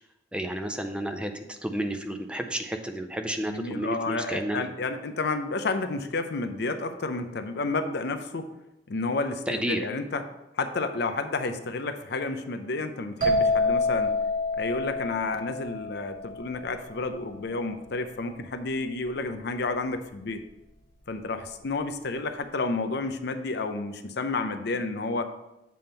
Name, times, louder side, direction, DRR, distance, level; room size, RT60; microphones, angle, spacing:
voice 1, 0.3-4.7 9.5-9.8, right 1 dB, 5° right, 6 dB, 0.4 m, -31 dB
voice 2, 3.4-8.5 8.9-10.2 10.6-14.2 14.5-20.4 21.1-25.2, left 3 dB, 65° left, 8 dB, 0.6 m, -31 dB
sound 1, 13.2-16.8, left 2 dB, 50° right, 2.8 m, -27 dB
7.6 x 3.5 x 5.5 m, 0.92 s
head